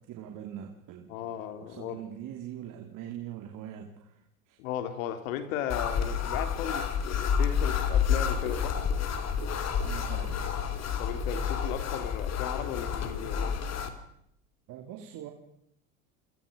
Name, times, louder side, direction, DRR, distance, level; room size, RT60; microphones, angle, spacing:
voice 1, 0.0-1.2 1.6-4.6 9.8-10.5 14.7-15.3, right 10 dB, 50° right, 3.1 m, -42 dB
voice 2, 1.1-2.0 4.6-8.8 11.0-13.6, left 10 dB, 75° left, 3.4 m, -36 dB
sound 1, 5.7-13.9, left 7 dB, 40° left, 3.2 m, -29 dB
28.0 x 26.0 x 5.3 m
supercardioid pair, 105°, 41 cm